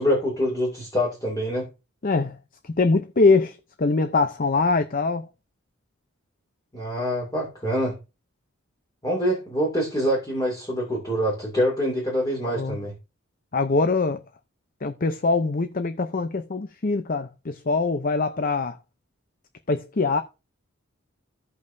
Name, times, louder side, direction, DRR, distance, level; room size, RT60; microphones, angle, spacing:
voice 1, 0.0-1.7 6.7-8.0 9.0-12.9, equal, 20° left, 2.6 m, -25 dB
voice 2, 2.0-2.4 2.8-5.2 12.4-12.8 13.5-14.2 14.8-18.8 19.7-20.2, left 3 dB, 45° left, 0.7 m, -23 dB
16.0 x 5.3 x 2.7 m
head